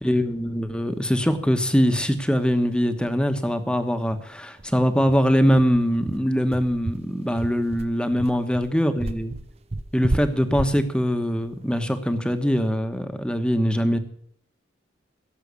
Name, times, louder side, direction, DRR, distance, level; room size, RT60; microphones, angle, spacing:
voice 1, 0.0-9.3 9.9-14.0, equal, 5° left, 8 dB, 1.2 m, -22 dB
sound 1, 2.2-2.3 2.6-2.7 3.0-3.2 3.5-3.6 4.1-12.5, right 2 dB, 35° right, 0.6 m, -33 dB
17.0 x 7.5 x 8.3 m, 0.63 s
head